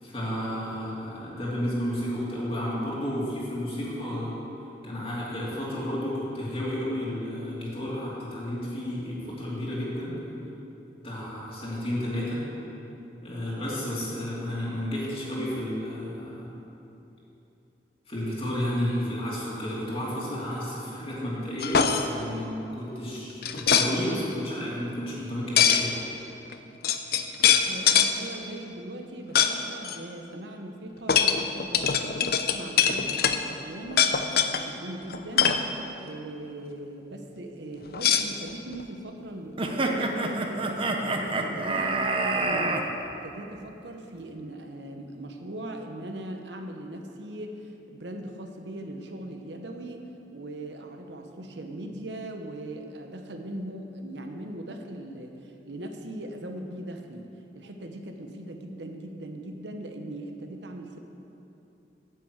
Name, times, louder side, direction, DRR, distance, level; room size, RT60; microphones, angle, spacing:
voice 1, 0.0-4.3 4.8-10.1 11.0-12.4 13.2-16.5 18.1-26.0, equal, 35° left, -7 dB, 2.7 m, -32 dB
sound 1, 21.6-22.1 23.4-23.9 25.6-25.9 26.5-26.6 26.8-28.1 29.4-29.5 29.8-30.0 31.1-33.4 33.9-34.6 35.1-35.6 37.9-38.8, left 8 dB, 60° left, 0.6 m, -22 dB
voice 2, 27.6-34.1 34.4-35.6 36.0-57.3 57.5-61.0, right 1 dB, 80° right, 4 dB, 1.0 m, -39 dB
sound 2, 39.6-42.8, right 2 dB, 30° right, 0.8 m, -27 dB
9.2 x 8.0 x 7.9 m, 2.9 s
head